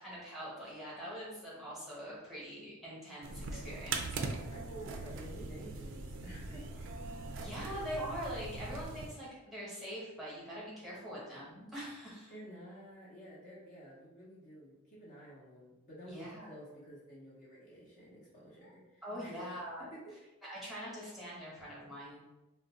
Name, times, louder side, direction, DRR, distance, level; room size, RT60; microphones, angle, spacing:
voice 1, 0.0-4.4 7.4-12.3 16.0-16.5 18.6-18.7 19.0-19.9 20.5-22.2, equal, ahead, -8 dB, 1.0 m, -43 dB
sound 1, 3.2-9.1, right 3 dB, 60° right, 0.4 m, -41 dB
voice 2, 4.5-6.9 12.3-19.5 19.9-20.2, right 1 dB, 35° left, -6 dB, 0.7 m, -51 dB
2.5 x 2.1 x 3.9 m, 1.0 s
head